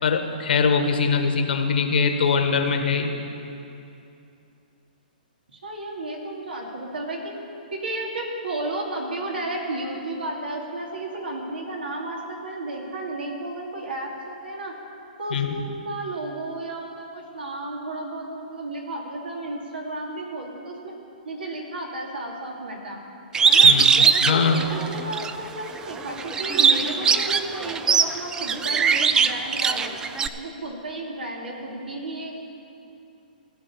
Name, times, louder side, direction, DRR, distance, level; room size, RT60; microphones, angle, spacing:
voice 1, 0.0-3.1 15.3-15.5 23.6-24.6, left 5 dB, 75° left, 5 dB, 1.5 m, -22 dB
voice 2, 5.5-7.3 7.7-14.7 15.2-20.9 21.2-23.0 23.4-23.7 24.1-29.9 30.4-32.4, right 2 dB, 90° right, -1 dB, 2.6 m, -33 dB
Bird, 23.3-25.3 25.8-30.3, right 6 dB, 15° right, 0.3 m, -19 dB
15.5 x 5.3 x 8.5 m, 2.7 s
hypercardioid pair, 140°, 5 cm